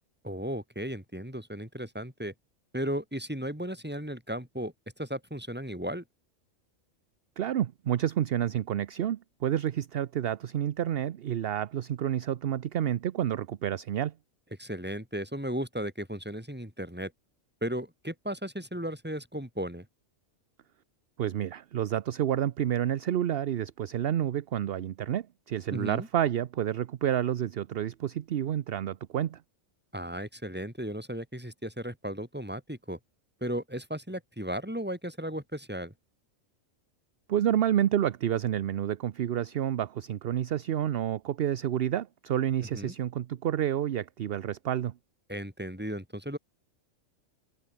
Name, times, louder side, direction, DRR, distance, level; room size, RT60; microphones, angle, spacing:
voice 1, 0.2-2.3 2.7-6.0 14.6-17.1 17.6-19.9 25.7-26.1 29.9-33.0 33.4-35.9 42.7-42.9 45.3-46.4, equal, 10° right, 4.3 m, -35 dB
voice 2, 7.4-14.1 21.2-29.4 37.3-44.9, right 10 dB, 55° right, 0.8 m, -29 dB
omnidirectional pair, 1.3 m